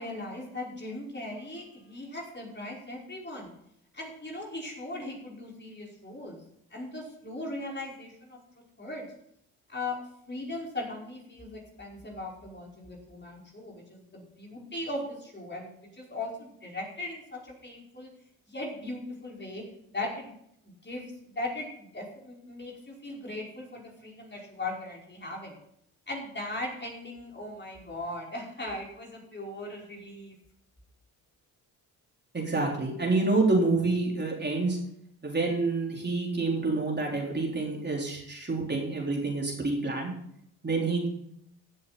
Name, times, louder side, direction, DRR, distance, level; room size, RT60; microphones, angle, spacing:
voice 1, 0.0-3.5 3.9-6.4 6.7-9.0 9.7-10.0 10.3-18.1 18.5-19.6 19.9-20.3 20.8-25.6 26.1-30.3, left 2 dB, 25° left, -2 dB, 5.0 m, -38 dB
voice 2, 32.3-34.8 35.2-40.1 40.6-41.1, right 3 dB, 25° right, -2 dB, 4.2 m, -27 dB
16.0 x 7.4 x 4.2 m, 0.73 s
hypercardioid pair, 55°, 44 cm